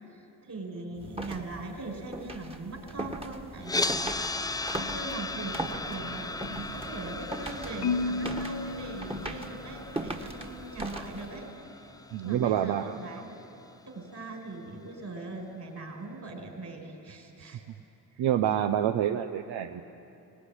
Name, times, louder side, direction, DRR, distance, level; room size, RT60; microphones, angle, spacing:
voice 1, 0.1-4.4 4.7-11.5 11.7-13.2 13.9-17.6 18.1-18.3, right 2 dB, 45° right, 3 dB, 4.9 m, -40 dB
sound 1, 1.0-11.5, right 1 dB, 15° right, 1.7 m, -39 dB
sound 2, 3.6-13.7, left 2 dB, 10° left, 0.5 m, -37 dB
Marimba xylophone, 7.8-10.0, left 4 dB, 75° left, 1.1 m, -33 dB
voice 2, 12.1-13.0 18.2-19.8, right 10 dB, 80° right, 7 dB, 0.8 m, -27 dB
19.0 x 18.5 x 9.9 m, 2.8 s
cardioid pair, 80°, 40 cm